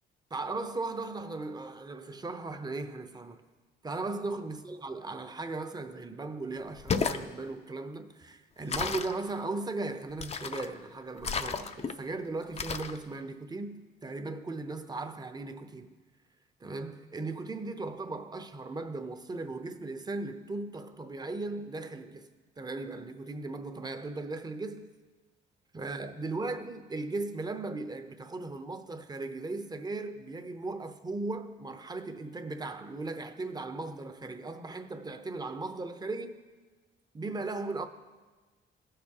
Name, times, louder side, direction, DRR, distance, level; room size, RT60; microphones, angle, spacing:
voice 1, 0.3-3.4 3.8-15.9 16.6-22.3 22.6-24.9 25.7-36.4 37.1-37.9, right 3 dB, 20° right, 0.7 m, -37 dB
sound 1, 6.7-7.2 8.7-9.2 10.2-10.7 11.2-11.9 12.6-13.0, left 5 dB, 30° left, 0.5 m, -32 dB
17.0 x 6.7 x 2.9 m
cardioid pair, 90°, 20 cm